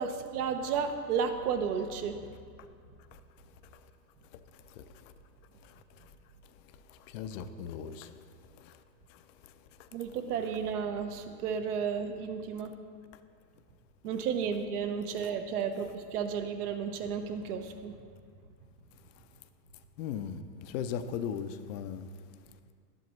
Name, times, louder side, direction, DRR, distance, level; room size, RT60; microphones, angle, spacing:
voice 1, 0.0-2.2 9.9-12.7 14.0-18.0, right 6 dB, 65° right, 1.0 m, -33 dB
voice 2, 7.1-8.1 20.0-20.4 20.7-22.1, left 8 dB, 50° left, 0.6 m, -36 dB
12.0 x 7.8 x 3.1 m
hypercardioid pair, 110°, 49 cm